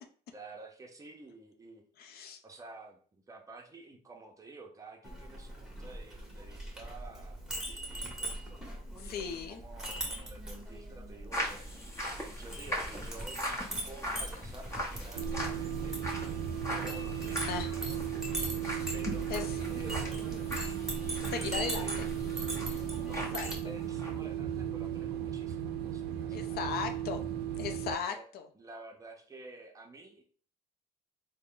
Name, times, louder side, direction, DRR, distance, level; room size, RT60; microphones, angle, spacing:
voice 1, 0.3-1.8 2.4-8.4 8.9-11.7 12.3-16.0 16.8-18.0 18.9-19.3 19.7-20.2 21.0-22.0 23.0-26.7 27.7-28.3 28.5-30.2, right 2 dB, 20° right, 2 dB, 0.8 m, -51 dB
voice 2, 2.0-2.4 8.9-9.6 17.5-17.7 19.3-19.6 21.2-22.1 23.3-23.5 26.3-28.5, left 6 dB, 65° left, 7 dB, 0.6 m, -37 dB
Chink clink, 5.0-23.6, right 1 dB, ahead, 1.2 m, -41 dB
sound 1, 11.3-23.5 23.8-24.1, equal, 15° left, 1.0 m, -41 dB
sound 2, 15.1-28.0, right 10 dB, 75° right, 0.4 m, -36 dB
3.7 x 2.2 x 3.7 m, 0.43 s
cardioid pair, 110°, 17 cm